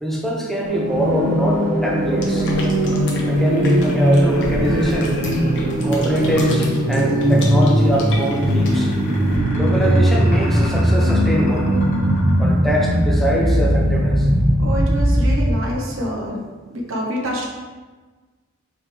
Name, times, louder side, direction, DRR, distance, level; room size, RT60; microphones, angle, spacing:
voice 1, 0.0-2.5 3.3-5.2 5.8-8.9 9.5-11.7 12.4-14.3, equal, ahead, -2 dB, 0.6 m, -23 dB
sound 1, 0.6-15.6, equal, 40° right, 0.7 m, -19 dB
sound 2, 2.2-9.4, left 1 dB, 60° left, 0.8 m, -32 dB
sound 3, 3.3-6.4 7.8-13.3, left 1 dB, 40° left, 1.1 m, -36 dB
voice 2, 14.6-16.4 16.7-17.5, equal, 70° right, -1 dB, 0.9 m, -26 dB
4.4 x 3.6 x 3.2 m, 1.3 s
head